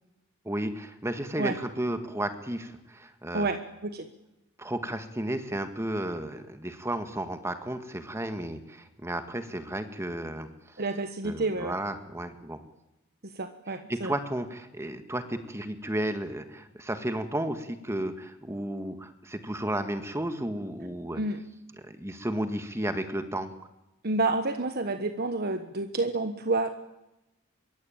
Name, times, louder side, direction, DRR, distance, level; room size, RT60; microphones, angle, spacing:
voice 1, 0.4-3.5 4.6-10.8 11.2-12.6 13.9-21.2 21.9-23.5, right 1 dB, 15° right, 8 dB, 1.7 m, -33 dB
voice 2, 3.3-4.1 10.8-11.8 13.2-14.1 21.1-21.4 24.0-26.7, right 2 dB, 50° right, 8 dB, 1.4 m, -29 dB
25.0 x 23.0 x 8.9 m, 0.93 s
head